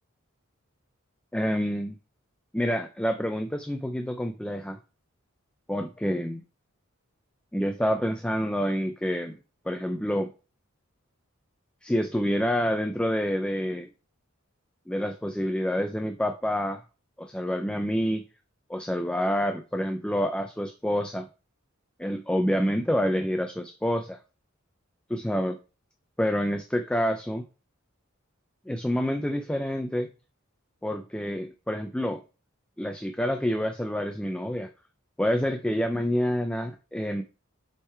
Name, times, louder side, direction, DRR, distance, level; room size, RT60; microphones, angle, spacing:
voice 1, 1.3-2.0 2.5-4.8 5.7-6.4 7.5-9.4 9.7-10.3 11.8-13.9 14.9-16.8 17.2-18.2 18.7-21.3 22.0-24.2 25.1-25.5 26.2-27.5 28.7-30.1 30.8-32.2 32.8-34.7 35.2-37.2, equal, 5° left, 6 dB, 0.4 m, -27 dB
7.3 x 3.7 x 4.5 m, 0.33 s
head